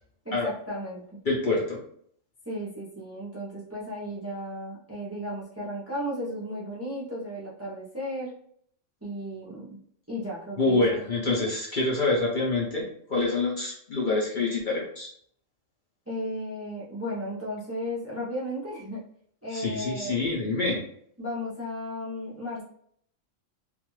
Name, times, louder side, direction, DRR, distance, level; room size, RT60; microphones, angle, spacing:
voice 1, 0.2-1.0 2.5-8.3 9.0-9.8 10.1-11.0 11.4-11.5 16.1-19.0 19.4-20.2 21.2-22.6, equal, 20° right, -7 dB, 0.4 m, -34 dB
voice 2, 1.2-1.8 10.6-15.1 19.5-20.8, left 3 dB, 50° left, -4 dB, 0.6 m, -26 dB
2.5 x 2.3 x 3.0 m, 0.65 s
omnidirectional pair, 1.3 m